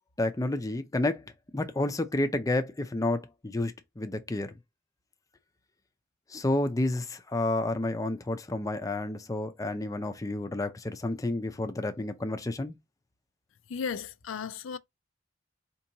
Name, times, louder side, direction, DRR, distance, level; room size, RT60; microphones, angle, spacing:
voice 1, 0.2-4.5 6.3-12.7, left 2 dB, 15° left, 0.5 m, -30 dB
voice 2, 13.7-14.8, left 6 dB, 70° left, 0.4 m, -35 dB
4.4 x 2.9 x 2.6 m
head